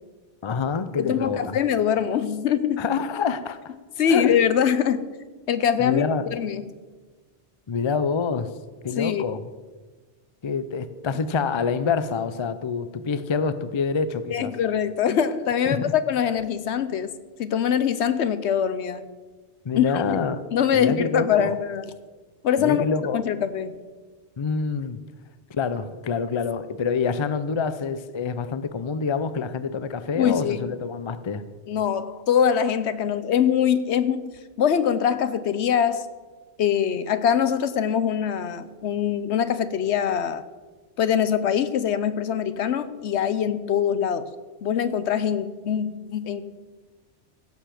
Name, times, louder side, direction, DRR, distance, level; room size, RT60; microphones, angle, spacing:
voice 1, 0.4-1.6 2.8-3.7 4.1-4.4 5.8-6.2 7.7-8.5 8.8-9.4 10.4-14.5 15.7-15.9 19.6-20.4 20.7-21.5 22.6-23.2 24.4-25.0 25.5-31.4, left 5 dB, 40° left, 13 dB, 0.4 m, -26 dB
voice 2, 1.0-2.8 4.0-5.1 5.5-6.0 6.3-6.6 9.0-9.2 14.3-17.1 17.4-19.0 19.8-20.0 20.5-21.9 22.4-22.9 23.1-23.8 30.1-30.6 31.7-36.0 36.6-40.4 41.0-44.3 44.6-46.4, left 8 dB, 70° left, 13 dB, 1.0 m, -23 dB
16.5 x 6.9 x 5.9 m, 1.4 s
omnidirectional pair, 1.2 m